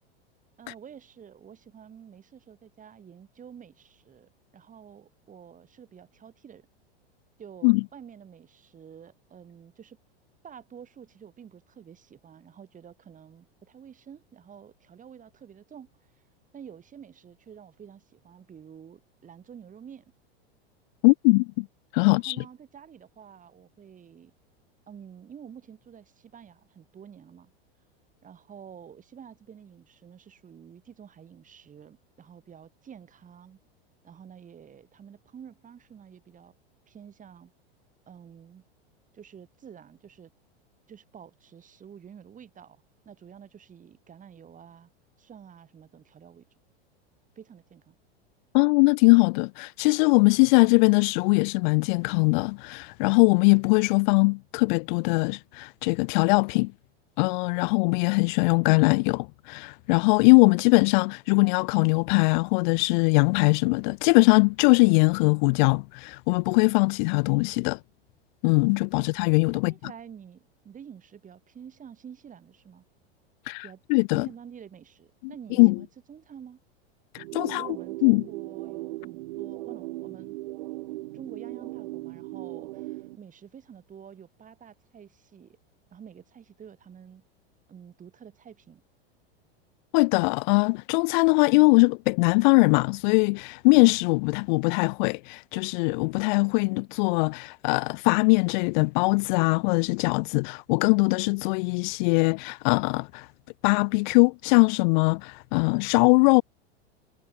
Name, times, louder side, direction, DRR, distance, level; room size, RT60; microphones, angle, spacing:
voice 1, 0.6-6.7 7.4-10.0 10.4-16.1 16.5-20.0 22.0-24.3 24.9-27.5 28.2-33.6 34.0-36.5 36.9-37.5 38.1-38.7 39.1-40.3 40.9-44.9 45.2-46.5 47.4-48.0 68.9-69.2 69.5-72.8 73.6-73.8 74.1-76.6 77.3-80.4 81.1-85.6 85.9-87.2 87.7-88.8, right 8 dB, 25° right, 4.0 m, -48 dB
voice 2, 21.0-21.7 21.9-22.4 48.5-56.7 57.2-67.8 68.4-69.7 73.5-74.3 75.6-75.7 77.1-77.7 78.0-78.2 89.9-103.3 103.6-106.4, left 30 dB, 50° left, 0.4 m, -21 dB
sound 1, 68.5-69.3, left 10 dB, 85° left, 3.8 m, -54 dB
sound 2, 77.2-83.2, right 19 dB, 65° right, 0.9 m, -38 dB
hypercardioid pair, 105°, 31 cm